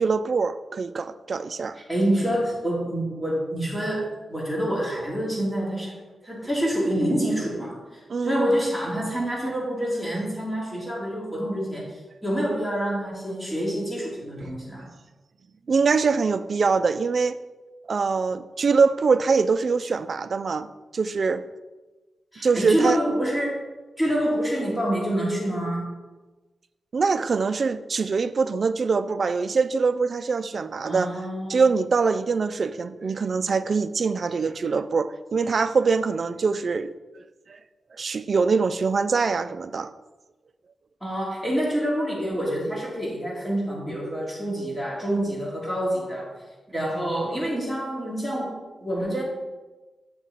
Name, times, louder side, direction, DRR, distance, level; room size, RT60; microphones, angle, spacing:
voice 1, 0.0-1.8 8.1-8.4 15.7-17.4 17.9-21.4 22.4-23.0 26.9-31.1 31.5-36.9 37.5-37.6 38.0-39.9, right 4 dB, 50° right, 12 dB, 0.4 m, -23 dB
voice 2, 1.9-5.9 6.2-11.9 12.2-14.9 22.3-23.6 24.0-25.9 30.8-31.7 41.0-46.3 46.7-49.2, right 1 dB, 10° left, -4 dB, 2.6 m, -27 dB
7.3 x 6.0 x 4.0 m, 1.2 s
wide cardioid pair, 95°, 0 cm